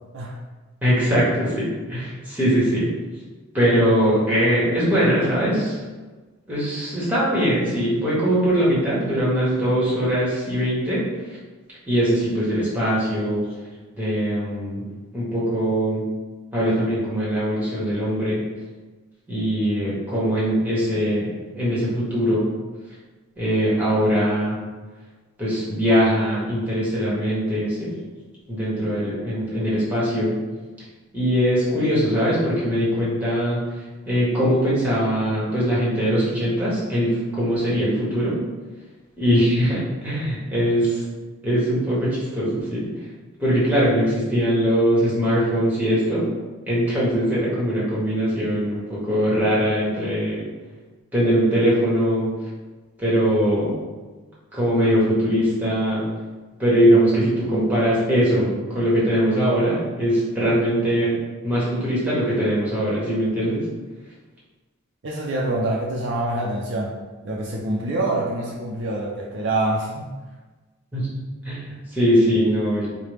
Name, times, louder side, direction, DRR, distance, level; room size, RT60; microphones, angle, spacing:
voice 1, 0.8-2.9 3.5-5.8 6.5-11.4 11.9-13.5 14.0-14.8 15.1-16.1 16.5-18.4 19.3-21.3 21.5-22.5 23.4-24.6 25.4-27.9 28.5-30.3 31.1-33.6 34.0-38.4 39.2-41.0 41.4-42.8 43.4-46.3 46.7-50.4 51.1-52.3 53.0-53.7 54.5-56.1 56.6-61.1 61.4-63.6 70.9-71.1 71.4-72.9, equal, 10° right, -8 dB, 1.3 m, -21 dB
voice 2, 65.0-66.9 67.2-70.1, right 2 dB, 55° right, -3 dB, 0.5 m, -25 dB
4.8 x 2.2 x 3.3 m, 1.3 s
head